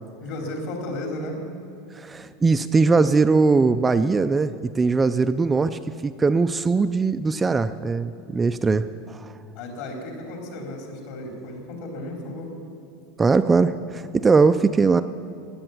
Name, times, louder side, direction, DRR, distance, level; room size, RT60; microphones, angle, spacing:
voice 1, 0.2-1.4 9.5-12.5, left 1 dB, 55° left, 2 dB, 3.7 m, -34 dB
voice 2, 1.9-9.3 13.2-15.0, right 4 dB, 10° right, 9 dB, 0.3 m, -20 dB
16.5 x 9.0 x 9.3 m, 2.6 s
supercardioid pair, 165°, 0 cm